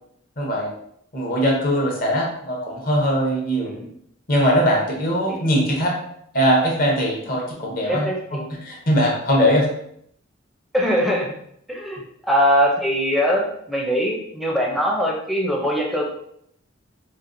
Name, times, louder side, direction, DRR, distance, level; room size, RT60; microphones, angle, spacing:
voice 1, 0.4-0.7 1.1-3.7 4.3-5.9 6.3-8.1 8.6-9.7, equal, 45° left, -2 dB, 0.8 m, -20 dB
voice 2, 3.6-3.9 5.3-5.4 7.9-8.5 10.7-11.4 11.7-16.0, equal, ahead, -2 dB, 0.5 m, -22 dB
4.3 x 2.1 x 2.5 m, 0.71 s
head